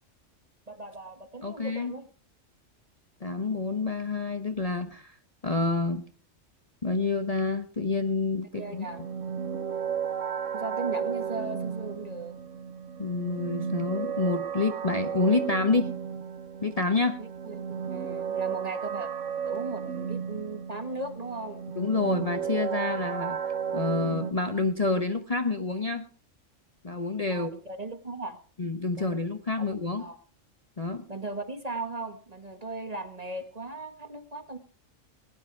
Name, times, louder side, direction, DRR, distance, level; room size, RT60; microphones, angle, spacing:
voice 1, 0.7-2.1 8.5-9.0 10.5-12.4 17.2-19.1 19.5-21.6 27.3-28.4 29.0-29.2 30.0-30.2 31.1-34.6, right 3 dB, 30° right, 8 dB, 1.6 m, -37 dB
voice 2, 1.4-1.9 3.2-5.1 5.4-6.0 6.8-8.9 13.0-15.9 16.6-17.2 21.8-23.4 23.7-26.1 26.8-27.5 28.6-30.1 30.8-31.0, left 3 dB, 30° left, 6 dB, 1.0 m, -28 dB
sound 1, 8.5-24.3, right 7 dB, 70° right, 1.3 m, -34 dB
20.0 x 10.5 x 4.7 m, 0.38 s
omnidirectional pair, 1.3 m